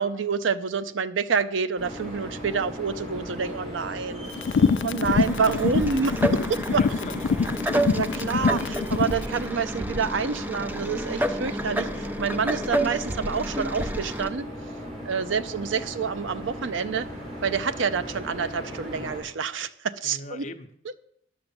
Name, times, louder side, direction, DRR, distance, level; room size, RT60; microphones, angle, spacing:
voice 1, 0.0-7.0 7.9-14.5 15.0-17.1 17.4-20.5 20.8-20.9, right 5 dB, 80° right, 0.5 m, -28 dB
sound 1, 1.8-19.2, equal, 35° right, 4.0 m, -38 dB
sound 2, 4.4-9.2, left 5 dB, 70° left, 0.3 m, -24 dB
sound 3, 5.0-14.3, right 1 dB, 10° right, 0.5 m, -30 dB
voice 2, 5.2-6.1 6.7-7.7 9.1-9.4 12.3-12.5 20.0-20.7, left 2 dB, 35° left, 0.7 m, -41 dB
10.5 x 6.9 x 7.0 m
head